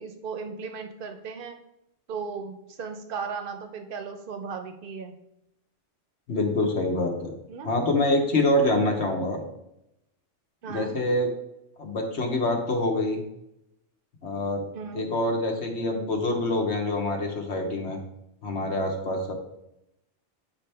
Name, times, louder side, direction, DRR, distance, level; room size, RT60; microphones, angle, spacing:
voice 1, 0.0-1.6 2.1-5.1 7.5-7.7 9.0-9.3 10.6-11.0 14.7-15.1, right 5 dB, 55° right, 7 dB, 0.8 m, -36 dB
voice 2, 6.3-7.3 7.6-9.4 10.7-11.3 11.8-13.2 14.2-14.6 14.9-18.0 18.4-19.3, left 1 dB, 65° left, 2 dB, 1.3 m, -25 dB
8.5 x 4.3 x 3.3 m, 0.84 s
omnidirectional pair, 1.2 m